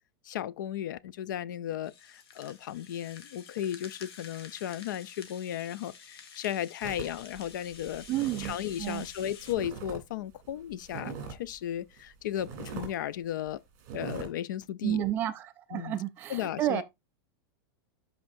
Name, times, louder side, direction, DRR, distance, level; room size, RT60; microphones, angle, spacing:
voice 1, 0.3-8.0 8.4-11.1 11.4-13.6 13.9-15.0 15.7-16.0 16.3-16.8, left 11 dB, 55° left, 0.4 m, -35 dB
Rattle (instrument), 1.8-9.5, left 6 dB, 85° left, 2.1 m, -50 dB
sound 1, 6.8-10.0 10.3-11.5 11.9-12.0 12.4-12.9 13.3-13.5 13.8-14.3, right 6 dB, 30° right, 3.1 m, -41 dB
voice 2, 8.1-9.0 14.8-16.8, right 13 dB, 15° right, 0.4 m, -31 dB
11.5 x 4.9 x 2.6 m
supercardioid pair, 180°, 13 cm